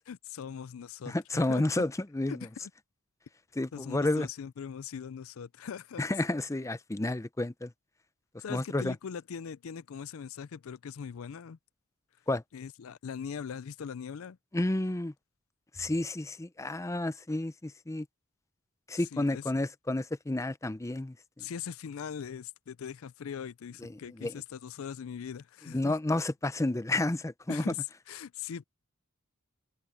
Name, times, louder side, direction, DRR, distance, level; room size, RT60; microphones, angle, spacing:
voice 1, 0.1-1.8 2.3-2.7 3.7-6.0 8.4-11.6 12.5-14.4 18.9-19.4 21.4-25.9 27.5-27.8 28.1-28.6, left 7 dB, 70° left, 0.4 m, -41 dB
voice 2, 1.1-2.5 3.6-4.3 6.0-7.7 8.5-8.9 12.3-12.4 14.5-15.1 15.7-18.1 18.9-21.4 23.8-24.3 25.7-27.7, left 2 dB, 15° left, 0.5 m, -31 dB
head